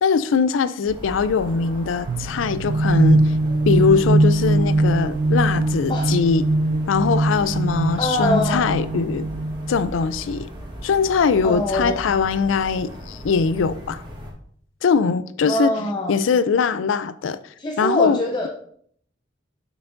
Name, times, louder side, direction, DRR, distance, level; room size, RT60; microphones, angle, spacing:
voice 1, 0.0-3.3 3.7-6.5 6.9-9.3 9.7-10.5 10.8-14.0 14.8-15.7 16.1-17.4 17.8-18.2, left 5 dB, 85° left, 0.4 m, -21 dB
sound 1, 0.9-14.3, equal, 25° right, 1.3 m, -38 dB
sound 2, 2.1-9.8, right 2 dB, 60° right, 0.3 m, -21 dB
voice 2, 8.0-8.7 11.4-12.1 15.4-16.1 17.6-18.5, left 1 dB, 25° left, 0.5 m, -24 dB
6.9 x 5.7 x 2.6 m
head